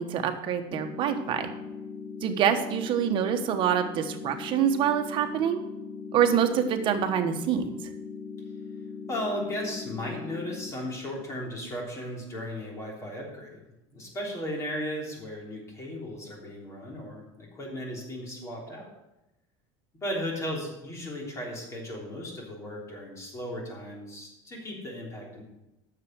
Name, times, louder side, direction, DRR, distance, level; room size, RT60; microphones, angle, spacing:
voice 1, 0.0-1.5 2.2-5.6 6.1-7.7, right 8 dB, 45° right, 6 dB, 1.2 m, -26 dB
sound 1, 0.7-10.7, left 5 dB, 10° left, 0.5 m, -40 dB
voice 2, 9.1-18.9 20.0-25.4, equal, 25° left, -1 dB, 3.3 m, -36 dB
9.5 x 6.9 x 6.2 m, 0.93 s
cardioid pair, 140°, 12 cm